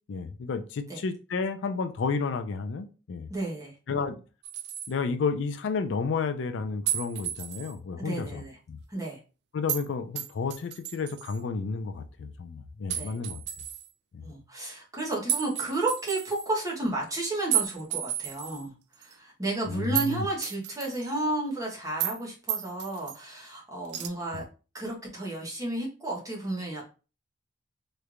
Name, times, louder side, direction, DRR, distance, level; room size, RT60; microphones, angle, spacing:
voice 1, 0.1-3.3 3.9-4.2 4.9-8.8 9.5-13.4 14.1-14.2 19.7-20.3 24.3-24.4, left 4 dB, 75° left, 0.4 m, -31 dB
voice 2, 3.3-3.7 8.0-8.6 8.9-9.2 12.9-13.1 14.2-18.7 19.0-24.4 24.7-26.9, right 2 dB, 15° right, 1.0 m, -32 dB
sound 1, 4.4-4.9 6.9-7.7 9.7-9.9 10.2-11.4 12.9-13.9 15.3-16.5 17.5-18.6 19.0-19.1 19.9-20.1 20.4-21.3 22.0-22.2 22.5-23.2 23.9-24.1, right 11 dB, 55° right, 0.4 m, -32 dB
3.2 x 3.2 x 2.4 m
head